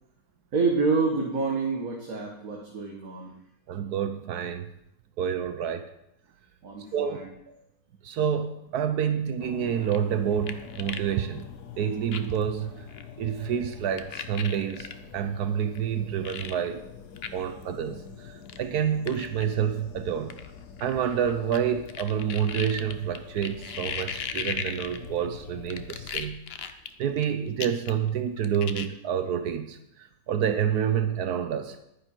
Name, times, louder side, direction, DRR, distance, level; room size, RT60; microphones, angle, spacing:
voice 1, 0.5-3.3 6.6-7.3, right 4 dB, 60° right, 0 dB, 1.8 m, -27 dB
voice 2, 3.7-4.7 5.2-5.9 6.9-7.2 7.5-7.6 8.0-11.4 11.8-12.9 13.2-16.8 17.3-20.4 20.8-26.4 27.0-31.8, right 8 dB, 75° right, 9 dB, 1.2 m, -28 dB
sound 1, 9.4-26.1, left 7 dB, 80° left, 1.5 m, -45 dB
sound 2, 9.8-11.1 11.4-11.5 12.1-12.4 12.9-13.0 14.0-14.9 15.7-15.8 16.2-16.6 17.2-17.3 17.6-17.7 18.5-18.6 19.1-19.4 20.3-21.6 21.9-25.3 25.7-27.2 27.6-28.1 28.4-28.9, left 7 dB, 50° left, 0.8 m, -36 dB
11.0 x 10.0 x 4.6 m, 0.81 s
omnidirectional pair, 1.7 m